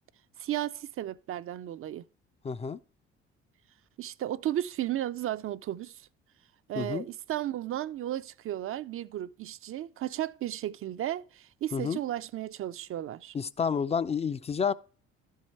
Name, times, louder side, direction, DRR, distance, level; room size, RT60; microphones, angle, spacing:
voice 1, 0.4-2.0 4.0-6.1 6.7-13.3, right 12 dB, 45° right, 0.4 m, -34 dB
voice 2, 2.4-2.8 6.8-7.1 11.7-12.0 13.3-14.7, left 6 dB, 20° left, 0.4 m, -29 dB
12.0 x 4.7 x 4.3 m
hypercardioid pair, 60°, 31 cm